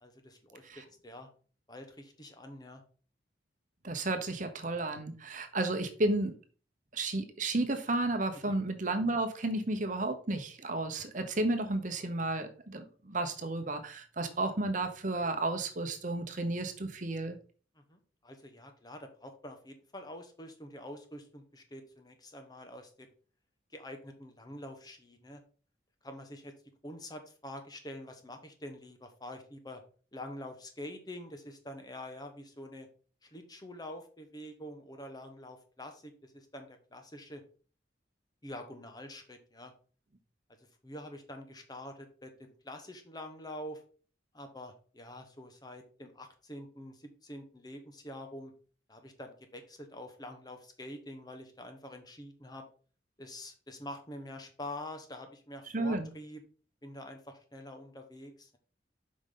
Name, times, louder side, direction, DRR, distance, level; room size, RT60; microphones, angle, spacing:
voice 1, 0.0-1.3 1.7-2.8 8.5-8.6 14.3-14.4 17.7-23.1 23.7-25.4 26.0-26.5 26.8-29.8 30.1-32.9 33.2-37.4 38.4-39.7 40.8-43.8 44.3-48.5 48.9-52.6 53.2-56.4 56.8-58.6, left 1 dB, 20° left, 6 dB, 1.1 m, -46 dB
voice 2, 3.8-6.4 6.9-17.4 55.7-56.1, right 2 dB, 45° right, 7 dB, 1.0 m, -32 dB
7.9 x 5.3 x 3.9 m, 0.40 s
head